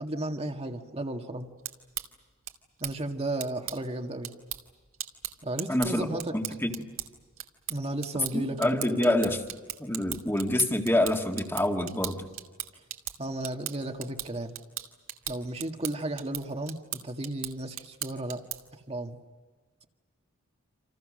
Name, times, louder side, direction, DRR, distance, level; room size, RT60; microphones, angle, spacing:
voice 1, 0.0-1.5 2.8-4.3 5.4-6.4 7.7-9.0 13.2-14.5 15.3-18.4 18.9-19.2, right 1 dB, 30° right, 5 dB, 1.8 m, -34 dB
sound 1, 1.4-18.8, right 12 dB, 70° right, 2.4 m, -40 dB
voice 2, 5.7-6.1 6.3-6.8 8.3-9.4 9.8-12.3, left 1 dB, 10° left, 3 dB, 2.2 m, -26 dB
28.5 x 28.0 x 6.5 m, 1.4 s
head